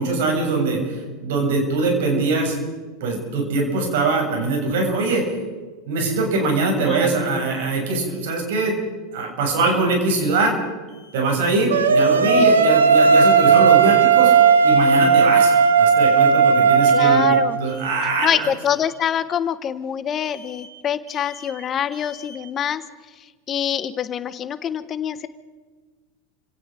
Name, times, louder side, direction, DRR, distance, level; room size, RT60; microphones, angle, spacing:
voice 1, 0.0-2.6 3.0-5.3 5.9-8.8 9.1-10.6 11.1-14.3 14.6-18.5, right 3 dB, 70° right, 2 dB, 7.1 m, -22 dB
voice 2, 6.8-7.1 12.2-12.4 16.9-17.6 18.2-22.8 23.5-25.3, left 9 dB, 35° left, 13 dB, 1.2 m, -25 dB
Alarm, 10.9-11.3 11.7-12.2 13.4-13.9 14.3-14.8 15.1-15.6 16.8-17.3 17.7-18.1 18.5-19.0 20.2-20.7 21.1-21.5 21.9-22.4, left 4 dB, 15° right, 6.5 m, -47 dB
sound 1, 11.7-17.5, right 6 dB, 90° right, 1.6 m, -15 dB
29.5 x 17.0 x 5.2 m, 1.4 s
hypercardioid pair, 100°, 0 cm